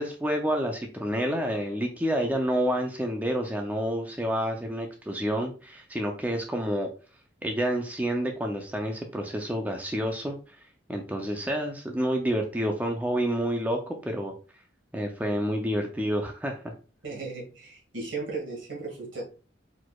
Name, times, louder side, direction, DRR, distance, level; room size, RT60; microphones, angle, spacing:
voice 1, 0.0-6.9 7.4-10.4 10.9-14.3 14.9-16.7, equal, 10° right, 2 dB, 0.4 m, -29 dB
voice 2, 17.0-19.2, right 3 dB, 75° right, -2 dB, 2.0 m, -36 dB
4.6 x 4.1 x 2.3 m, 0.36 s
head